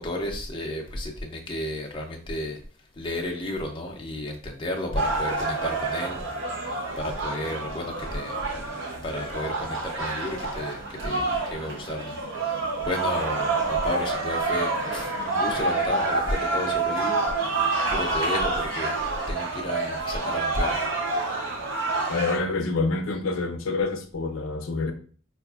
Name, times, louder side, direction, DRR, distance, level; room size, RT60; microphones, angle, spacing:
voice 1, 0.0-2.6 2.9-6.2 6.5-6.7 7.0-8.6 9.0-20.8, left 1 dB, 25° left, 1 dB, 0.5 m, -33 dB
sound 1, 5.0-22.4, right 3 dB, 70° right, 0.7 m, -28 dB
Wind instrument woodwind instrument, 10.7-15.9, right 7 dB, 40° right, 1.2 m, -49 dB
voice 2, 22.1-24.9, left 3 dB, 75° left, 6 dB, 0.5 m, -27 dB
4.6 x 2.4 x 2.3 m, 0.43 s
head